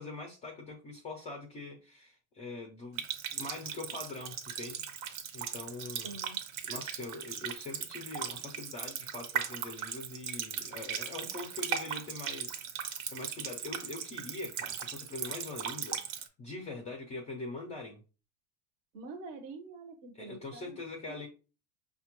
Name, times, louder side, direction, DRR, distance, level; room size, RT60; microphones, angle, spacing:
voice 1, 0.0-3.0 3.3-4.8 5.3-6.2 6.6-18.0 20.2-21.3, left 2 dB, 20° left, 0.4 m, -43 dB
Water tap faucet, 3.0-16.3, right 8 dB, 70° right, 0.8 m, -38 dB
voice 2, 6.0-6.4 18.9-20.8 21.1-21.3, right 3 dB, 40° right, 0.6 m, -46 dB
5.8 x 2.2 x 2.9 m
cardioid pair, 170°, 37 cm